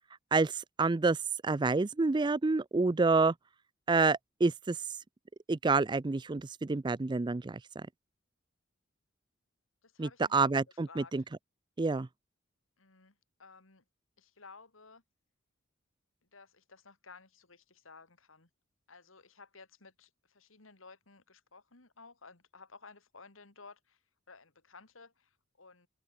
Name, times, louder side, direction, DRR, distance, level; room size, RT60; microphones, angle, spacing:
voice 1, 0.3-1.2 1.4-3.3 3.9-4.8 5.5-7.9 10.0-11.2 11.8-12.1, right 3 dB, 25° right, 0.4 m, -28 dB
voice 2, 9.8-10.5 10.9-11.1 12.8-13.8 14.2-15.0 16.3-18.5 18.9-24.0 24.3-25.9, left 4 dB, 90° left, 3.1 m, -55 dB
open air
head